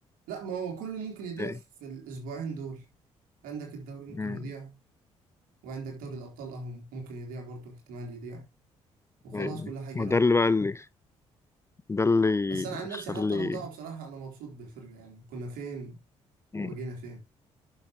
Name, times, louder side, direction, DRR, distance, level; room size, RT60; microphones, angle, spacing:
voice 1, 0.3-2.8 3.4-4.8 5.6-8.4 9.2-10.2 12.5-16.0 16.6-17.2, right 4 dB, 70° right, 3.8 m, -39 dB
voice 2, 10.0-10.8 11.9-12.6 13.2-13.6 16.5-16.7, left 3 dB, 20° left, 0.4 m, -25 dB
10.5 x 7.2 x 3.0 m
hypercardioid pair, 45°, 15 cm